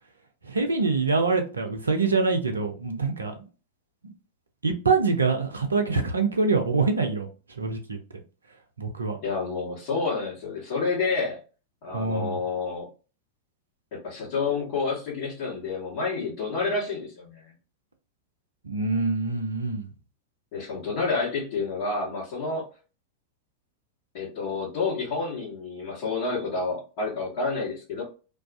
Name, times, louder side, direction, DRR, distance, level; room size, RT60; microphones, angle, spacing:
voice 1, 0.4-3.4 4.0-4.1 4.6-7.3 7.6-8.0 8.8-9.2 11.9-12.4 18.6-19.9, right 4 dB, 75° right, 0.4 m, -25 dB
voice 2, 9.2-11.4 11.8-12.9 14.0-17.4 20.5-22.7 24.1-28.0, left 4 dB, 45° left, 1.2 m, -29 dB
2.3 x 2.3 x 2.4 m
figure-of-eight pair, 90°, 0 cm